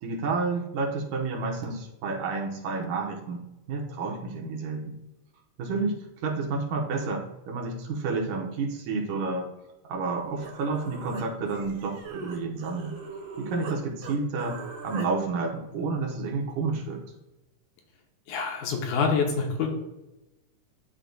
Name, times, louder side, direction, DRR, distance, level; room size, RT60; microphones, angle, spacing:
voice 1, 0.0-5.0 5.6-9.5 9.8-12.9 13.4-17.0, right 4 dB, 85° right, 0 dB, 2.6 m, -30 dB
Human voice, 10.4-13.8 14.0-15.1, right 4 dB, 65° right, 1.6 m, -40 dB
voice 2, 18.3-19.7, left 5 dB, 75° left, 1 dB, 2.2 m, -26 dB
11.5 x 3.9 x 2.3 m, 0.98 s
omnidirectional pair, 3.7 m